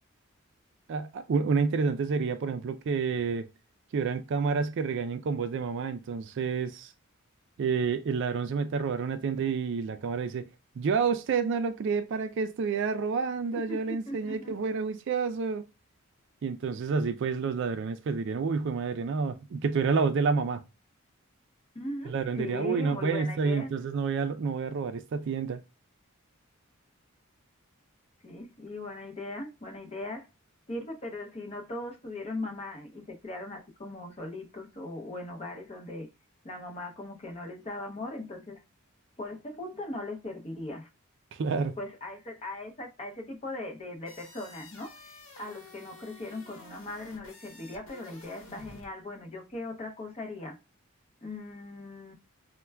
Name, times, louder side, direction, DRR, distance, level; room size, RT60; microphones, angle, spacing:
voice 1, 0.9-3.5 3.9-6.9 7.6-10.5 10.8-15.6 16.4-20.6 22.1-25.6 41.4-41.7, right 5 dB, 60° right, 0.3 m, -29 dB
voice 2, 13.5-14.5 21.7-23.7 28.2-30.3 30.7-36.1 36.4-38.6 39.2-40.9 41.8-44.9 45.4-50.6 51.2-52.1, left 2 dB, 30° left, 0.6 m, -39 dB
sound 1, 44.1-48.9, left 2 dB, 65° left, 1.0 m, -51 dB
4.3 x 2.2 x 2.2 m
head